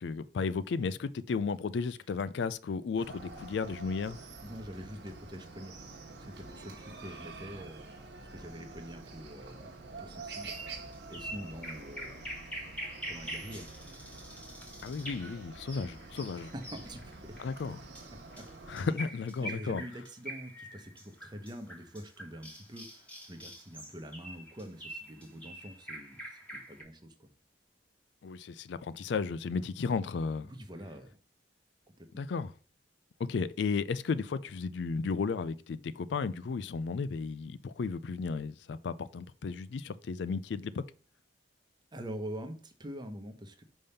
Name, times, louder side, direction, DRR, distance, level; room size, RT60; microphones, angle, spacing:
voice 1, 0.0-4.2 14.8-16.5 17.4-17.8 18.7-19.8 28.2-30.5 32.1-32.5 33.2-40.8, left 5 dB, 70° left, 0.4 m, -34 dB
Chicken rooster, 3.0-18.9, right 3 dB, 65° right, 1.2 m, -48 dB
voice 2, 4.4-5.8 6.2-7.9 8.3-12.3 13.1-13.7 16.4-17.4 18.1-18.5 19.4-27.3 30.4-31.2 32.0-32.3 41.9-43.6, equal, 25° right, 0.8 m, -45 dB
sound 1, 10.4-26.8, equal, 5° left, 1.3 m, -45 dB
5.3 x 3.5 x 5.5 m
head